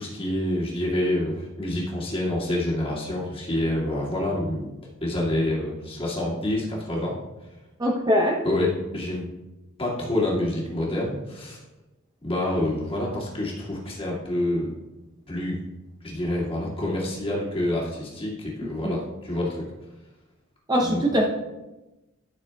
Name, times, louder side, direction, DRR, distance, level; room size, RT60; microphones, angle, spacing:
voice 1, 0.0-4.7 5.0-7.1 8.4-9.3 9.8-11.6 12.2-14.7 15.3-15.6 16.0-19.6 20.8-21.1, left 1 dB, 25° left, -5 dB, 2.2 m, -27 dB
voice 2, 7.8-8.4 18.8-19.0 20.7-21.3, equal, 20° right, -1 dB, 0.7 m, -22 dB
13.0 x 6.5 x 2.3 m, 1.0 s
head